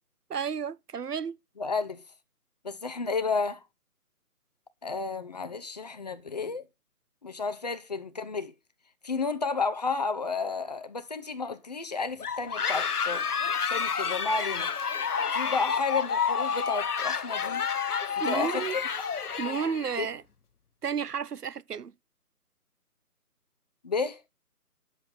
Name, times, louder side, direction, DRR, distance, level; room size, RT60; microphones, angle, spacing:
voice 1, 0.3-1.4 18.2-18.8 19.4-20.2 20.8-21.9, right 7 dB, 80° right, 0.7 m, -32 dB
voice 2, 1.6-2.0 2.6-3.6 4.8-6.7 7.2-8.5 9.0-13.2 13.7-14.7 15.3-17.6 18.1-18.6 20.0-20.1 23.8-24.2, left 4 dB, 25° left, 0.9 m, -32 dB
sound 1, 12.2-20.0, left 6 dB, 75° left, 1.0 m, -29 dB
10.5 x 7.8 x 5.5 m
figure-of-eight pair, 150°, 47 cm